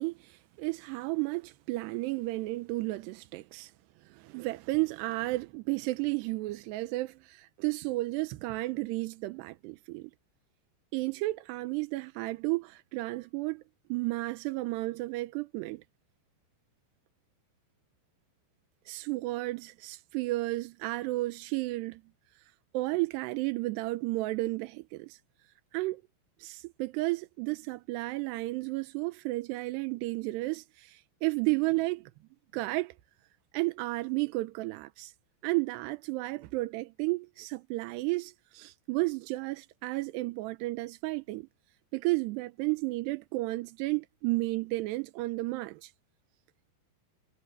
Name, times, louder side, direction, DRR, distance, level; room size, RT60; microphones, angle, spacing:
voice 1, 0.0-3.7 4.0-10.1 10.9-13.6 13.9-15.8 18.9-22.0 22.7-25.2 25.7-26.0 26.4-32.1 32.5-32.9 33.5-35.1 35.4-41.5 41.9-45.9, right 21 dB, 85° right, 2.8 m, -32 dB
omnidirectional pair, 4.9 m